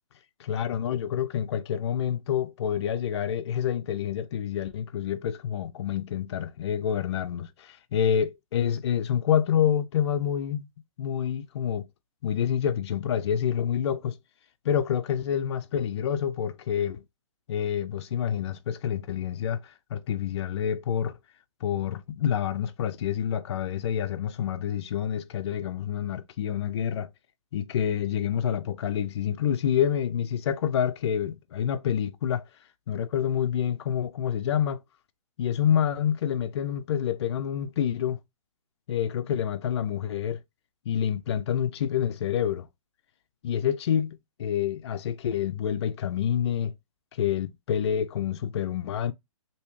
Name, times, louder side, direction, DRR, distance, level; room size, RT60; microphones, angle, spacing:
voice 1, 0.5-10.7 11.0-11.9 12.2-14.2 14.6-17.0 17.5-21.1 21.6-27.1 27.5-32.5 32.9-34.8 35.4-38.2 38.9-40.4 40.9-42.7 43.4-46.7 47.1-49.1, left 9 dB, 55° left, 0.4 m, -27 dB
3.3 x 2.7 x 3.0 m
hypercardioid pair, 150°, 17 cm